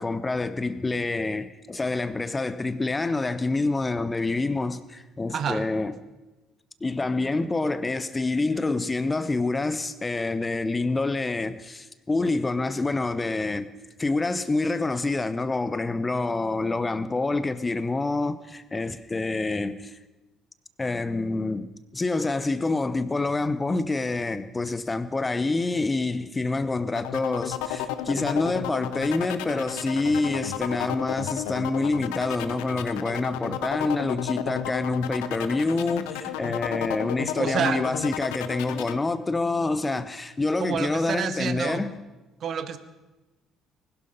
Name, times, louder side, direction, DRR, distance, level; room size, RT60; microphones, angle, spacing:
voice 1, 0.0-5.9 6.8-13.7 14.0-20.0 20.8-41.9, left 3 dB, 20° left, 0.8 m, -27 dB
voice 2, 5.3-5.6 37.4-37.8 40.6-41.8 42.4-42.8, right 7 dB, 45° right, 1.1 m, -28 dB
sound 1, 27.0-39.0, left 11 dB, 65° left, 0.8 m, -33 dB
20.5 x 12.0 x 5.4 m
figure-of-eight pair, 50°, 0 cm